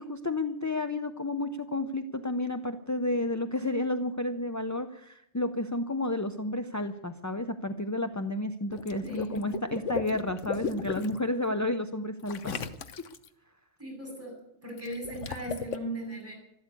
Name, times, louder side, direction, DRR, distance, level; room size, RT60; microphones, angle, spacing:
voice 1, 0.0-12.7, left 2 dB, 20° left, 8 dB, 0.5 m, -31 dB
Water / Liquid, 8.7-11.2 12.3-13.3 14.8-15.8, left 5 dB, 75° left, 1.3 m, -35 dB
voice 2, 9.0-9.6 13.8-14.3 14.6-16.3, right 1 dB, 10° right, 0 dB, 7.7 m, -38 dB
13.0 x 12.5 x 8.4 m, 0.81 s
omnidirectional pair, 1.3 m